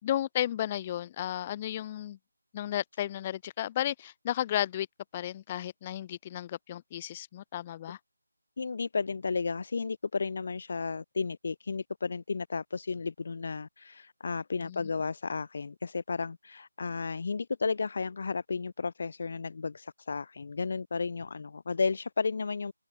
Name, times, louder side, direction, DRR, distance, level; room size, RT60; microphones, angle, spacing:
voice 1, 0.0-2.2 2.5-4.9 5.1-8.0 14.6-14.9, left 12 dB, 20° left, 2.3 m, -33 dB
voice 2, 8.6-22.7, left 4 dB, 45° left, 1.0 m, -33 dB
open air
figure-of-eight pair, 160°, 0 cm